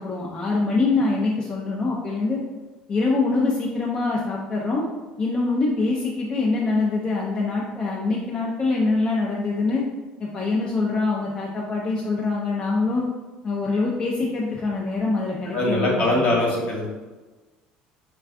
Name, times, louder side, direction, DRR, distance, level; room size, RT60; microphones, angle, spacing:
voice 1, 0.0-2.4 2.9-4.9 5.2-9.8 10.2-13.0 13.4-16.4, left 3 dB, 30° left, -3 dB, 0.4 m, -24 dB
voice 2, 15.5-16.9, left 1 dB, 55° left, -3 dB, 1.0 m, -22 dB
3.3 x 2.2 x 2.4 m, 1.3 s
supercardioid pair, 100°, 3 cm